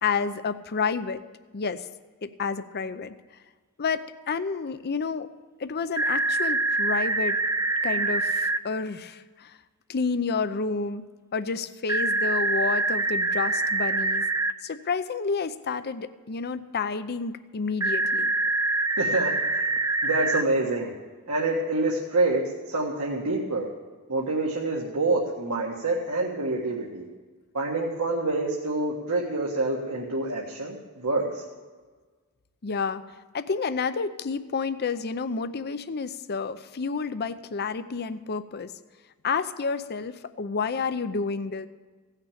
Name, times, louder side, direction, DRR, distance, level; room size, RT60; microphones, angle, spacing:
voice 1, 0.0-1.2 1.5-1.9 2.2-3.1 3.8-5.3 5.6-7.4 7.8-9.6 9.9-11.0 11.3-14.2 14.6-18.3 32.6-33.0 33.3-38.7 39.2-41.7, left 5 dB, 45° left, 12 dB, 0.6 m, -30 dB
sound 1, 6.0-8.6 11.9-14.5 17.8-20.4, right 2 dB, 15° right, 0.5 m, -25 dB
voice 2, 19.0-19.7 20.0-20.9 21.3-23.7 24.1-27.0 27.5-31.4, right 2 dB, 85° right, -3 dB, 1.7 m, -27 dB
16.5 x 6.6 x 8.6 m, 1.4 s
head